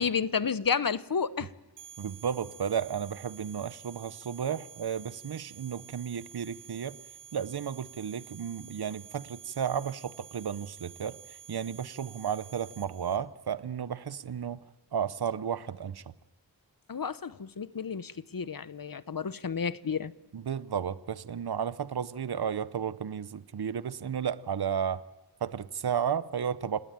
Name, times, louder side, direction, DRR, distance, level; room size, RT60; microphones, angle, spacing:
voice 1, 0.0-1.5 16.9-20.1, left 6 dB, 55° left, 0.9 m, -31 dB
sound 1, 1.8-13.2, right 9 dB, 85° right, 2.7 m, -50 dB
voice 2, 2.0-7.0 7.3-14.6 14.9-16.1 20.3-25.0 25.4-26.8, right 8 dB, 65° right, 0.8 m, -33 dB
30.0 x 18.5 x 8.9 m
wide cardioid pair, 50°, 41 cm